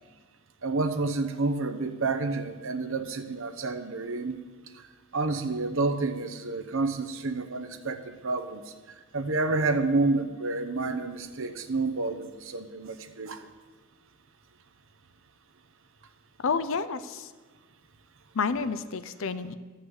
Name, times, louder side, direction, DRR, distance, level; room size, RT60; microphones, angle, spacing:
voice 1, 0.6-4.4 5.1-8.6 9.1-13.5, right 3 dB, 60° right, 9 dB, 0.9 m, -29 dB
voice 2, 16.4-17.3 18.3-19.5, left 5 dB, 60° left, 13 dB, 0.6 m, -29 dB
13.0 x 5.8 x 8.1 m, 1.4 s
head